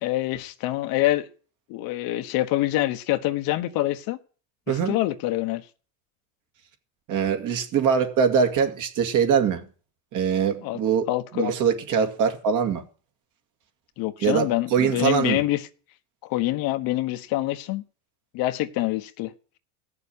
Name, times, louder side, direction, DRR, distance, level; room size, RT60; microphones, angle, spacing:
voice 1, 0.0-1.3 1.7-4.2 4.7-5.6 10.6-10.8 11.1-11.5 14.0-15.6 16.2-17.8 18.3-19.3, left 16 dB, 55° left, 1.3 m, -26 dB
voice 2, 7.1-9.7 10.1-11.1 11.3-12.8 14.2-15.4, right 7 dB, 45° right, 2.3 m, -23 dB
16.0 x 6.9 x 8.6 m
supercardioid pair, 115°, 42 cm